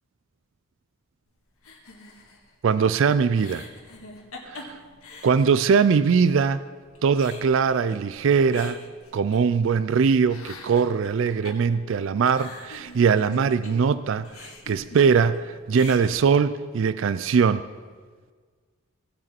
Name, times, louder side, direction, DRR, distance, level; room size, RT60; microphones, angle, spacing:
sound 1, 1.6-6.1 6.4-6.5 6.8-9.9 10.2-13.9 14.2-15.4 15.6-16.1, left 2 dB, 85° left, 1.8 m, -44 dB
voice 1, 2.6-3.6 4.5-4.8 5.2-6.6 7.0-8.8 9.1-17.6, right 6 dB, 60° right, 14 dB, 0.3 m, -21 dB
17.5 x 6.3 x 4.4 m, 1.6 s
head